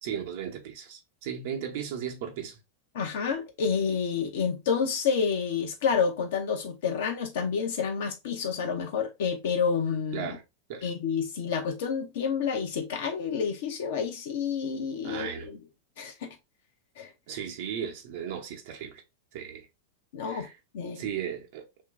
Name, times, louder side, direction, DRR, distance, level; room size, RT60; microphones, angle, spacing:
voice 1, 0.0-2.6 10.1-10.4 10.7-10.9 15.0-15.5 17.3-19.0 19.3-19.7 20.2-20.5 20.9-21.7, right 8 dB, 50° right, 0.8 m, -36 dB
voice 2, 2.9-10.4 10.8-15.6 16.0-16.3 17.0-17.1 20.1-20.5 20.7-21.0, left 6 dB, 55° left, 0.7 m, -29 dB
2.9 x 2.6 x 3.5 m
figure-of-eight pair, 90°, 0 cm